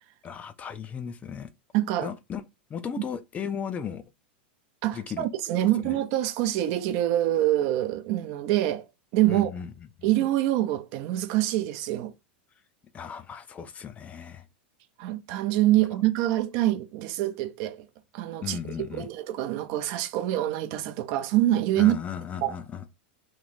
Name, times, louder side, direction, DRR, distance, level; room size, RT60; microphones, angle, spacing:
voice 1, 0.2-1.5 2.0-2.4 2.7-4.0 4.9-5.3 5.6-6.0 9.3-9.7 10.0-10.1 12.9-14.5 18.4-19.1 21.8-22.8, left 7 dB, 25° left, 0.4 m, -36 dB
voice 2, 1.7-2.1 4.8-8.9 9.1-9.5 10.0-12.1 15.0-17.9 18.1-18.6 18.9-22.0 22.4-22.6, right 14 dB, 55° right, 0.5 m, -25 dB
3.1 x 2.5 x 4.0 m
hypercardioid pair, 115°, 6 cm